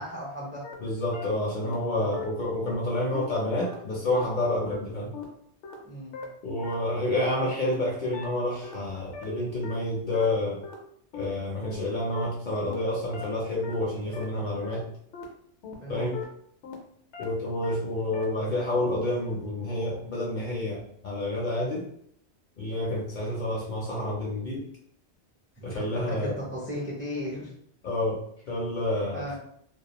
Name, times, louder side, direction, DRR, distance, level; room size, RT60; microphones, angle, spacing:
voice 1, 0.0-0.6 5.8-6.1 15.8-16.1 25.6-27.5 29.1-29.4, equal, 15° right, -4 dB, 0.4 m, -36 dB
sound 1, 0.6-0.7 1.1-1.2 1.6-1.7 2.1-2.2 2.6-2.7 3.1-3.2 3.6-3.7 4.1-4.2 4.6-4.7 5.1-5.2 5.6-5.7 6.1-6.2 6.6-6.7 7.1-7.2 7.6-7.7 8.1-8.2 8.6-8.7 9.1-9.2 9.6-9.7 10.1-10.2 10.6-10.7 11.1-11.2 11.6-11.7 12.1-12.2 12.6-12.7 13.1-13.2 13.6-13.7 14.1-14.2 14.6-14.7 15.1-15.2 15.6-15.7 16.1-16.2 16.6-16.7 17.1-17.2 17.6-17.7 18.1-18.2, left 7 dB, 80° left, 0.9 m, -39 dB
voice 2, 0.8-5.1 6.4-10.6 11.1-14.8 15.9-16.2 17.2-21.9 22.6-24.6 25.6-26.4 27.8-29.4, left 1 dB, 55° left, -3 dB, 0.6 m, -29 dB
2.3 x 2.2 x 2.8 m, 0.66 s
omnidirectional pair, 1.2 m